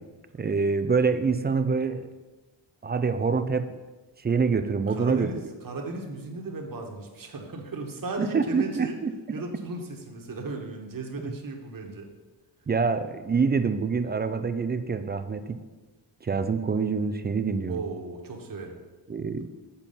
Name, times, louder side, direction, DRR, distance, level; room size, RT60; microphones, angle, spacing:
voice 1, 0.4-2.1 2.8-3.8 4.2-5.3 8.2-9.1 12.7-15.6 16.2-17.8 19.1-19.5, right 5 dB, 25° right, 10 dB, 0.4 m, -26 dB
voice 2, 4.9-5.4 5.6-8.9 9.3-12.1 17.7-18.8, right 3 dB, 45° right, 2 dB, 1.4 m, -36 dB
7.1 x 4.4 x 5.7 m, 1.2 s
cardioid pair, 80°, 47 cm